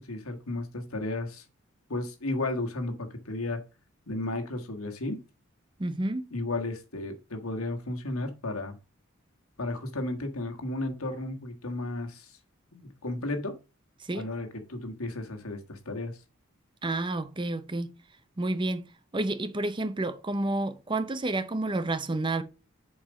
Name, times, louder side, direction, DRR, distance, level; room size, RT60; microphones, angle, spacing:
voice 1, 0.0-1.4 1.9-3.6 4.1-5.2 6.3-8.8 9.6-12.3 12.7-13.5 14.1-16.1, left 2 dB, 85° left, 1.6 m, -33 dB
voice 2, 5.8-6.3 14.0-14.3 16.8-17.9 18.4-18.9 19.1-22.4, right 2 dB, 20° right, 0.6 m, -30 dB
7.3 x 4.8 x 5.1 m
head